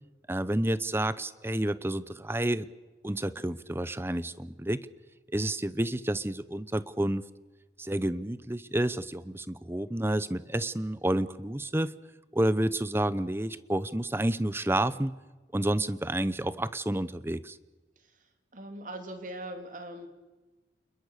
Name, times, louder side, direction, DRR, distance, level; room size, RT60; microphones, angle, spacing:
voice 1, 0.3-2.7 3.0-4.9 5.3-7.3 7.8-11.9 12.3-15.1 15.5-17.6, right 1 dB, 15° right, 16 dB, 0.7 m, -30 dB
voice 2, 18.5-20.1, right 1 dB, 45° right, 6 dB, 3.2 m, -40 dB
28.5 x 21.5 x 6.6 m, 1.2 s
head